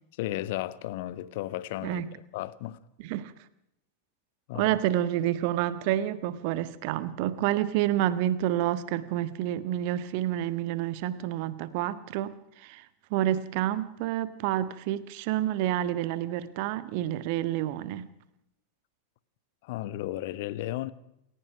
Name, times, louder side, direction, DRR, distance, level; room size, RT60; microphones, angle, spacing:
voice 1, 0.2-2.8 4.5-4.7 19.6-20.9, left 15 dB, 50° left, 1.2 m, -34 dB
voice 2, 4.5-12.8 13.1-18.1, right 13 dB, 45° right, 1.5 m, -29 dB
28.0 x 16.5 x 5.9 m
figure-of-eight pair, 90°, 0 cm